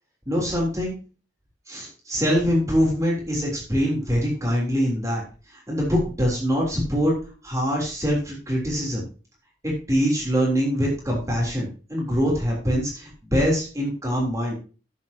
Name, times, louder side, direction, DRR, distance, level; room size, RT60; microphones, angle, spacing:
voice 1, 0.3-0.9 1.7-5.2 5.5-7.1 7.4-9.0 9.6-14.5, equal, 20° right, -3 dB, 3.5 m, -24 dB
11.5 x 8.9 x 2.9 m, 0.34 s
head